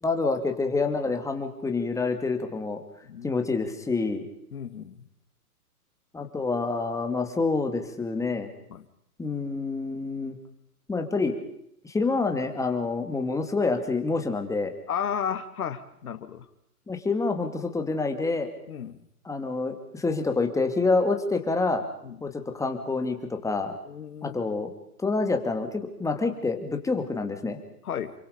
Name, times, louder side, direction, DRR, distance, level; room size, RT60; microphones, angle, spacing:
voice 1, 0.0-2.8 3.2-4.2 6.1-8.5 9.2-10.4 10.9-11.4 11.8-14.7 16.9-18.5 19.2-21.8 22.2-23.7 24.2-24.7 25.0-27.6, left 3 dB, 5° left, 5 dB, 2.4 m, -27 dB
voice 2, 3.0-3.4 4.5-5.0 8.7-8.8 14.9-16.5 18.7-19.0 22.0-22.2 23.9-24.4 27.8-28.1, left 8 dB, 70° left, 11 dB, 2.3 m, -33 dB
28.5 x 24.5 x 5.2 m, 0.72 s
hypercardioid pair, 125°, 46 cm